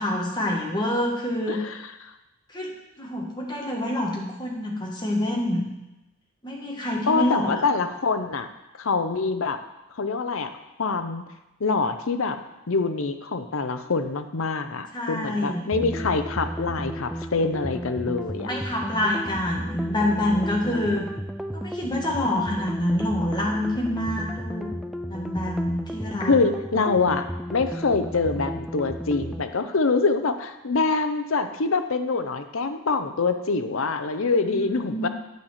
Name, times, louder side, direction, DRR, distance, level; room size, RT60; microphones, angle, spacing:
voice 1, 0.0-1.6 2.5-5.7 6.4-7.6 14.9-15.6 18.4-21.0 21.5-24.7 25.1-26.3 34.4-35.1, left 1 dB, 20° left, -1 dB, 1.5 m, -27 dB
voice 2, 7.1-8.5 8.8-9.6 10.0-10.5 10.8-11.2 11.6-12.4 12.7-18.5 26.2-27.2 27.5-35.1, left 4 dB, 65° left, 8 dB, 0.7 m, -25 dB
sound 1, 15.7-29.4, equal, ahead, 0.3 m, -34 dB
9.3 x 4.3 x 7.3 m, 0.98 s
head